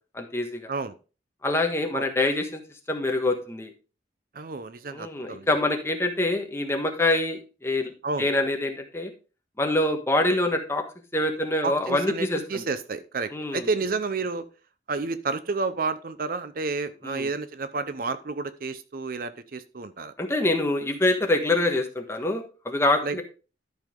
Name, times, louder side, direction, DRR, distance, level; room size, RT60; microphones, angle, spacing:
voice 1, 0.1-0.7 1.4-2.6 2.9-3.7 4.9-7.9 8.2-9.1 9.6-10.8 11.1-12.6 13.3-13.7 17.0-17.3 20.2-23.2, left 2 dB, 15° left, 4 dB, 1.3 m, -25 dB
voice 2, 4.3-5.5 8.0-8.3 11.6-14.5 14.9-20.1 23.0-23.2, right 4 dB, 50° right, 13 dB, 0.6 m, -30 dB
12.0 x 5.6 x 3.6 m, 0.34 s
head